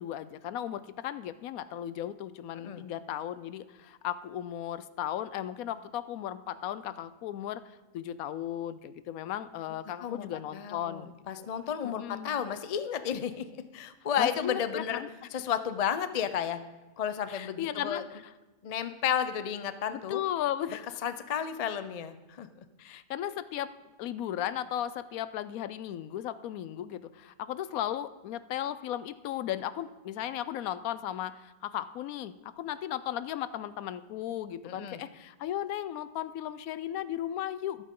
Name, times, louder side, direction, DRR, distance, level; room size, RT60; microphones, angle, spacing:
voice 1, 0.0-11.1 11.8-12.4 14.2-15.1 17.3-18.2 19.9-20.9 22.8-23.7 24.0-37.8, left 11 dB, 80° left, 15 dB, 1.0 m, -36 dB
voice 2, 10.5-15.0 15.3-16.6 17.0-18.0 18.6-20.2 21.0-22.5 34.6-35.0, left 8 dB, 55° left, 11 dB, 0.4 m, -32 dB
13.5 x 12.0 x 3.7 m, 1.1 s
omnidirectional pair, 1.5 m